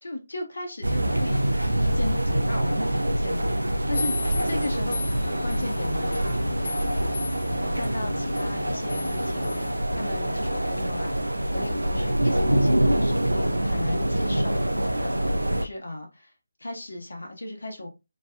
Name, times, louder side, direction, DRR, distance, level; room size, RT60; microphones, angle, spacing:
voice 1, 0.0-4.2 4.4-5.1 5.4-6.4 7.7-11.1 11.5-14.7 15.0-15.3 15.5-16.3 16.6-17.9, left 1 dB, 70° left, 0.8 m, -35 dB
sound 1, 0.8-15.7, right 1 dB, 80° right, 0.3 m, -25 dB
sound 2, 3.9-9.7, left 3 dB, 35° left, 0.7 m, -35 dB
2.5 x 2.3 x 2.2 m
figure-of-eight pair, 150°, 0 cm